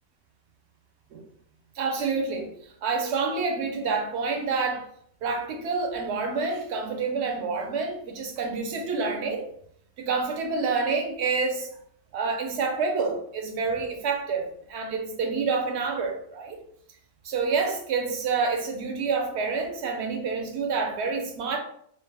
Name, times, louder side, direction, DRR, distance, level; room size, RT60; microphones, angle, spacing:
voice 1, 1.8-2.5 2.8-4.9 5.2-9.5 10.0-11.7 12.1-16.6 17.2-21.6, right 4 dB, 80° right, 0.9 m, -28 dB
2.4 x 2.0 x 3.3 m
omnidirectional pair, 1.1 m